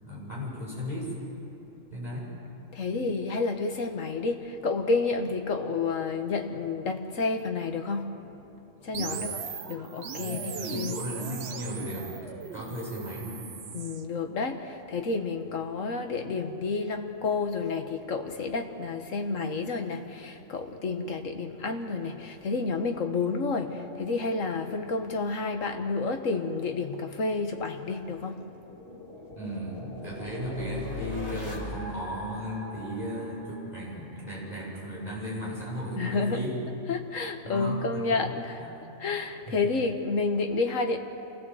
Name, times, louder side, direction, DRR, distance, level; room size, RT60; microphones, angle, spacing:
voice 1, 0.0-1.1 1.9-2.3 8.9-9.3 10.1-12.2 12.5-13.5 29.4-36.6 37.4-38.1 38.6-39.0 39.5-39.6, equal, 30° left, -6 dB, 8.0 m, -36 dB
voice 2, 2.7-8.4 8.8-9.4 9.7-11.0 13.7-28.6 36.0-36.5 36.9-38.7 39.0-41.0, left 4 dB, 85° left, 5 dB, 1.8 m, -30 dB
sound 1, 8.9-14.0, right 6 dB, 55° right, 1.1 m, -38 dB
sound 2, 27.6-34.4, left 2 dB, 50° left, 3.1 m, -41 dB
27.5 x 16.5 x 7.9 m, 2.9 s
omnidirectional pair, 1.3 m